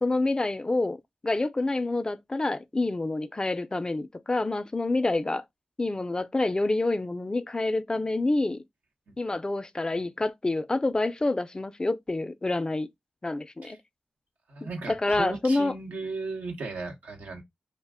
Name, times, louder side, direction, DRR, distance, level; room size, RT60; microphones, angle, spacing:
voice 1, 0.0-1.0 1.2-5.4 5.8-8.6 9.2-12.9 13.2-13.8 14.6-15.7, left 2 dB, 30° left, 0.3 m, -27 dB
voice 2, 14.5-17.4, right 3 dB, 85° right, 0.8 m, -36 dB
2.5 x 2.2 x 3.4 m
cardioid pair, 50°, 3 cm